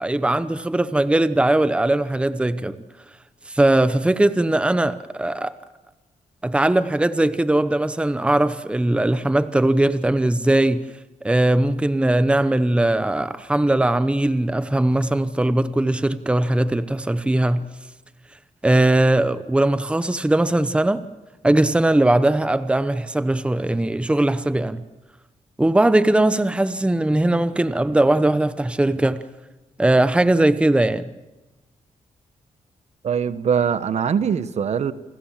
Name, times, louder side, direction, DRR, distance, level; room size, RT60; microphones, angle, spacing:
voice 1, 0.0-2.8 3.5-5.5 6.4-10.9 11.2-17.7 18.6-21.0 21.4-24.8 25.6-29.2 29.8-31.0, right 1 dB, 10° right, 0.9 m, -19 dB
voice 2, 33.0-34.9, right 7 dB, 60° right, 1.2 m, -22 dB
29.0 x 20.5 x 7.5 m
cardioid pair, 100°, 13 cm